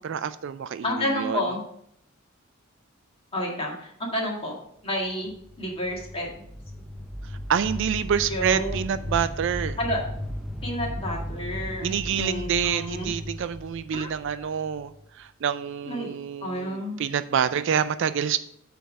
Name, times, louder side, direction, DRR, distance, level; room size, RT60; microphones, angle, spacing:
voice 1, 0.0-1.5 7.5-9.8 11.8-18.4, right 7 dB, 55° right, 13 dB, 0.3 m, -27 dB
voice 2, 0.8-1.6 3.3-4.5 4.8-5.3 5.6-6.4 8.3-8.8 9.8-10.0 10.6-13.1 13.9-14.1 15.9-16.1 16.4-17.0, equal, 25° left, -2 dB, 1.7 m, -30 dB
sound 1, 5.2-15.0, left 1 dB, ahead, 0.6 m, -36 dB
8.7 x 3.5 x 6.3 m, 0.73 s
head